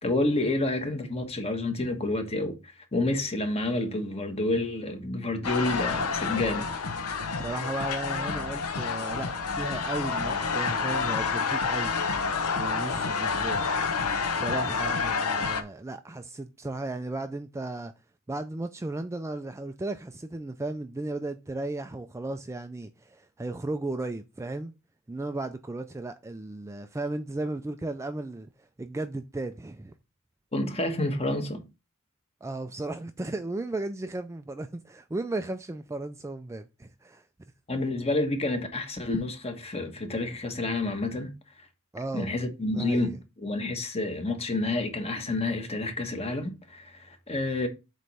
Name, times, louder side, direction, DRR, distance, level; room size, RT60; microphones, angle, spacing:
voice 1, 0.0-6.7 30.5-31.6 37.7-41.3 42.1-47.7, left 2 dB, 30° left, 1.3 m, -29 dB
sound 1, 5.4-15.6, left 5 dB, 85° left, 0.9 m, -29 dB
voice 2, 7.4-11.9 12.5-13.7 14.3-17.9 18.3-24.7 25.1-29.9 32.4-37.3 41.9-42.3 42.7-43.2, right 2 dB, 15° right, 0.3 m, -35 dB
7.6 x 3.1 x 5.4 m
head